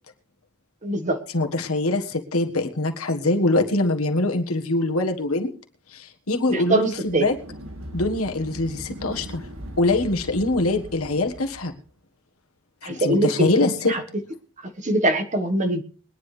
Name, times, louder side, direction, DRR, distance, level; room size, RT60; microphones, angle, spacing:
voice 1, 0.8-1.2 6.5-7.3 12.8-14.0 14.8-15.8, right 1 dB, 35° right, 6 dB, 1.5 m, -23 dB
voice 2, 1.3-5.5 5.9-7.3 7.9-9.4 9.8-11.7 12.8-14.0, left 2 dB, 85° left, 4 dB, 1.6 m, -23 dB
sound 1, 6.9-11.8, equal, 70° right, 2.0 m, -39 dB
22.5 x 10.0 x 3.3 m, 0.41 s
head